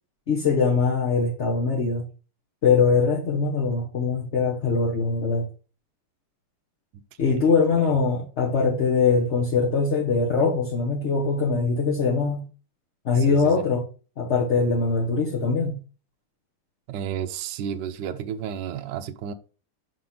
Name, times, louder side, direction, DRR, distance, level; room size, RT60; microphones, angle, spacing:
voice 1, 0.3-2.1 2.6-5.5 7.2-12.4 13.0-13.9 14.2-15.8, left 4 dB, 40° left, 1.2 m, -22 dB
voice 2, 6.9-7.9 13.2-13.7 16.9-19.3, right 9 dB, 70° right, 1.1 m, -33 dB
6.0 x 5.6 x 3.7 m
omnidirectional pair, 2.4 m